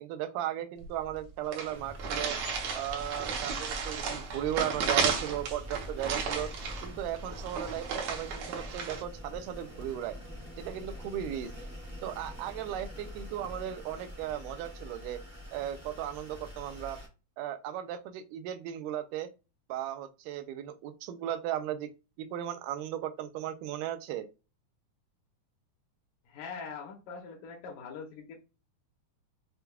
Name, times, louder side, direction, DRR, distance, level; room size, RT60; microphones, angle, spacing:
voice 1, 0.0-2.4 2.7-6.5 6.8-10.2 10.6-11.5 12.0-15.2 15.5-17.0 17.4-19.3 19.7-21.9 22.2-24.3, right 11 dB, 85° right, 2.2 m, -36 dB
sound 1, 0.8-0.9 1.1-1.2 1.5-9.0, right 5 dB, 65° right, 1.9 m, -34 dB
sound 2, 1.7-17.1, equal, 10° right, 0.9 m, -44 dB
voice 2, 26.3-28.4, left 5 dB, 75° left, 2.4 m, -42 dB
6.7 x 2.3 x 2.3 m
omnidirectional pair, 3.8 m